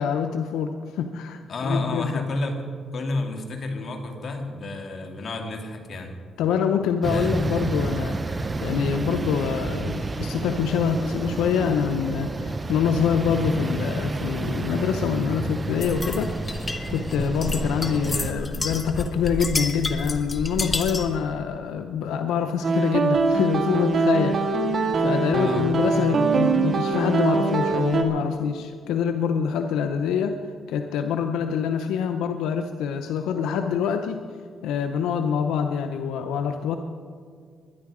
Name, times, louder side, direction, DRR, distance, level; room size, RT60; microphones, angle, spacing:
voice 1, 0.0-2.3 6.4-24.7 25.0-30.4 30.7-34.3 34.6-36.8, left 7 dB, 90° left, 7 dB, 0.7 m, -25 dB
voice 2, 1.5-2.7 2.9-6.1 7.0-7.4 25.3-25.7, left 2 dB, 50° left, 4 dB, 2.3 m, -30 dB
sound 1, 7.0-18.3, right 3 dB, 25° right, 0.7 m, -30 dB
sound 2, 15.8-21.2, left 2 dB, 25° left, 1.3 m, -30 dB
sound 3, 22.6-28.0, right 3 dB, 45° right, 1.8 m, -22 dB
21.5 x 10.5 x 4.9 m, 2.1 s
cardioid pair, 90°, 0 cm